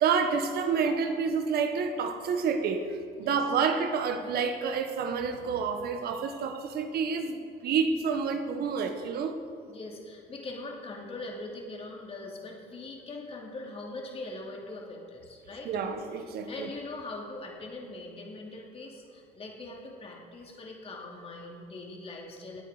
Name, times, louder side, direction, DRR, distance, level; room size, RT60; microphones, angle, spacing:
voice 1, 0.0-9.4 15.6-16.7, right 5 dB, 65° right, 7 dB, 1.2 m, -29 dB
voice 2, 9.6-15.7 16.5-22.6, left 2 dB, 35° left, -1 dB, 2.8 m, -41 dB
17.5 x 9.0 x 5.0 m, 2.3 s
cardioid pair, 110°, 17 cm